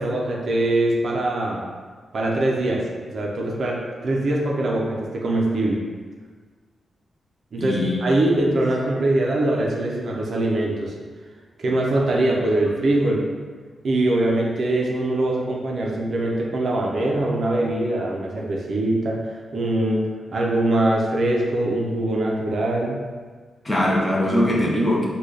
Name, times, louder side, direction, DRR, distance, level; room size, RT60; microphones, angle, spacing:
voice 1, 0.0-1.7 2.1-5.8 7.5-10.9 11.6-13.3 13.8-23.0, right 1 dB, 50° right, -2 dB, 0.5 m, -22 dB
voice 2, 7.6-8.0 8.3-8.5 23.6-25.1, left 1 dB, 15° left, -3 dB, 0.5 m, -21 dB
3.8 x 2.2 x 3.2 m, 1.5 s
wide cardioid pair, 175°, 0 cm